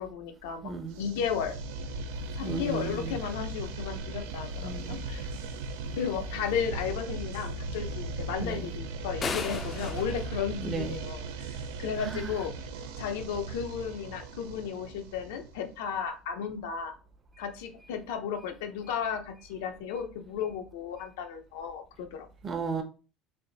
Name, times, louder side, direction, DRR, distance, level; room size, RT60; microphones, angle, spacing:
voice 1, 0.0-1.5 2.1-5.3 6.0-17.0 17.4-22.3, left 7 dB, 90° left, 0.7 m, -34 dB
voice 2, 0.6-1.0 2.4-3.2 4.6-5.0 8.4-8.7 10.6-11.0 12.1-12.3 22.4-22.8, right 4 dB, 30° right, 0.8 m, -34 dB
sound 1, 0.9-15.7, right 3 dB, 90° right, 0.5 m, -38 dB
sound 2, 9.2-11.4, left 5 dB, 30° left, 0.4 m, -37 dB
3.4 x 2.7 x 4.0 m
supercardioid pair, 115°, 0 cm